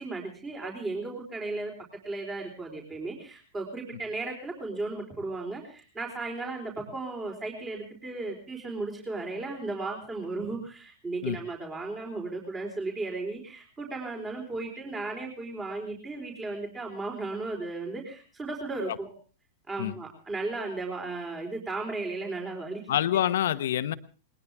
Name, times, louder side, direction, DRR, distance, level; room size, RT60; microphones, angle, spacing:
voice 1, 0.0-1.7 2.0-19.1 19.7-22.8, right 3 dB, 20° right, 2 dB, 4.3 m, -35 dB
voice 2, 22.9-23.9, left 11 dB, 70° left, 13 dB, 1.1 m, -26 dB
20.0 x 20.0 x 3.5 m, 0.37 s
hypercardioid pair, 105°, 0 cm